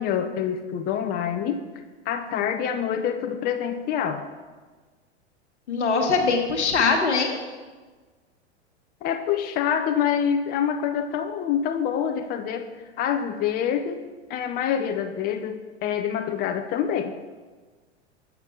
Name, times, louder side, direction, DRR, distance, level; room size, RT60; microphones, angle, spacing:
voice 1, 0.0-1.6 2.1-4.2 9.0-12.7 13.0-14.0 14.3-17.1, left 8 dB, 30° left, 6 dB, 0.5 m, -26 dB
voice 2, 5.7-7.4, left 4 dB, 80° left, 3 dB, 1.2 m, -22 dB
7.9 x 5.8 x 3.6 m, 1.4 s
hypercardioid pair, 95°, 34 cm